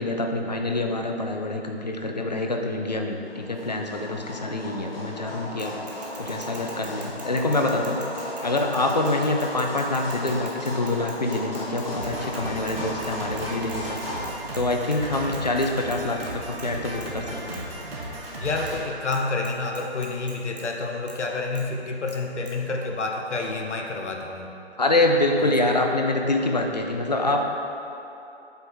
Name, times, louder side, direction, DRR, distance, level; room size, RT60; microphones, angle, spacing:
voice 1, 0.0-5.8 6.2-8.0 8.4-14.3 14.5-17.6 24.8-27.5, left 2 dB, 40° left, 3 dB, 0.4 m, -26 dB
sound 1, 3.2-14.3, left 1 dB, 55° left, 1.4 m, -36 dB
Bicycle / Mechanisms, 5.6-12.8 13.0-13.1 13.4-14.6 14.9-15.0 15.3-16.3 16.6-16.7 17.0-17.1 17.5-17.6 18.7-18.8 19.1-19.2 19.4-20.6 21.1-21.2 21.5-21.7 22.1-22.2 22.5-22.6, right 3 dB, 40° right, 0.9 m, -44 dB
Drum kit, 11.9-19.7, right 1 dB, 60° right, 1.3 m, -36 dB
voice 2, 18.4-24.5 25.4-25.5, left 3 dB, 85° left, 2 dB, 0.9 m, -29 dB
7.8 x 4.4 x 3.5 m, 2.9 s
hypercardioid pair, 165°, 34 cm